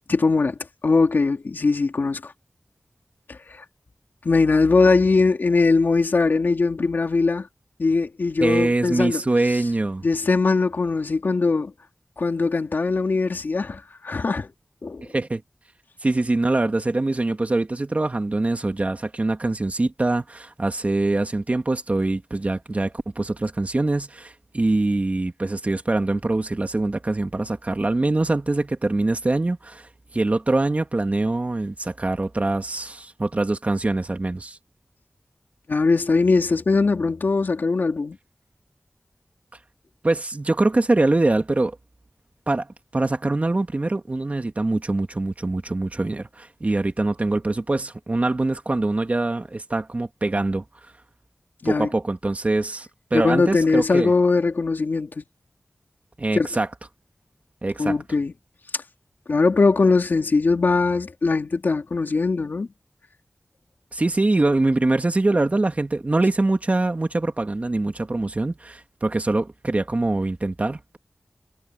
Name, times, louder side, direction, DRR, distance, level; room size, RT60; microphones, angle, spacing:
voice 1, 0.1-0.5 0.8-2.3 3.3-3.6 4.2-7.5 7.8-9.2 10.0-11.7 12.2-14.5 14.8-15.0 35.7-38.2 51.6-51.9 53.1-55.2 56.3-56.5 57.8-58.3 59.3-62.7, left 4 dB, 85° left, 3.4 m, -21 dB
voice 2, 8.4-10.1 15.1-15.4 16.0-29.9 30.1-34.6 40.0-41.8 42.5-42.7 42.9-50.6 51.6-54.1 56.2-56.7 57.6-58.0 63.9-71.0, right 2 dB, 45° right, 2.3 m, -23 dB
wide cardioid pair, 45°, 3 cm